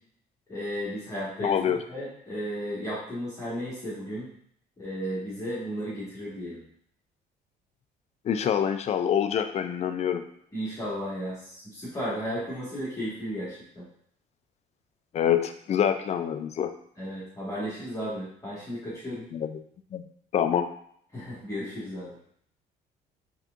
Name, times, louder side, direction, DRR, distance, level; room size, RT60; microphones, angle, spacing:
voice 1, 0.5-4.3 4.8-6.6 10.5-13.8 17.0-19.3 21.1-22.2, equal, 20° left, -10 dB, 1.7 m, -34 dB
voice 2, 1.4-1.8 8.3-10.2 15.1-16.7 19.3-19.6 19.9-20.0 20.3-20.7, left 9 dB, 40° left, 8 dB, 0.4 m, -26 dB
4.2 x 3.5 x 2.6 m, 0.65 s
cardioid pair, 110°, 17 cm